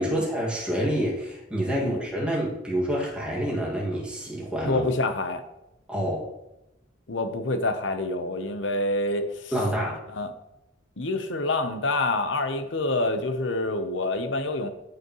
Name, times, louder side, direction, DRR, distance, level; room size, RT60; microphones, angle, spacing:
voice 1, 0.0-4.8 5.9-6.3 9.5-10.0, equal, 5° right, -4 dB, 2.1 m, -27 dB
voice 2, 4.6-5.4 7.1-9.5 10.1-10.3 11.0-14.7, left 2 dB, 70° left, 8 dB, 0.9 m, -27 dB
14.5 x 5.0 x 3.1 m, 0.91 s
head